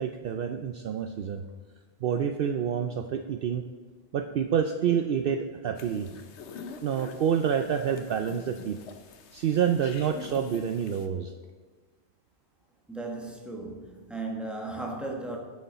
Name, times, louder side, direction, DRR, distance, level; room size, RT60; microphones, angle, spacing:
voice 1, 0.0-1.4 2.0-3.6 4.1-6.1 6.8-8.8 9.3-11.3, right 8 dB, 65° right, 0.7 m, -28 dB
sound 1, 5.8-11.1, left 5 dB, 80° left, 1.1 m, -45 dB
voice 2, 12.9-15.4, right 2 dB, ahead, 1.3 m, -36 dB
9.3 x 8.2 x 4.2 m
omnidirectional pair, 1.1 m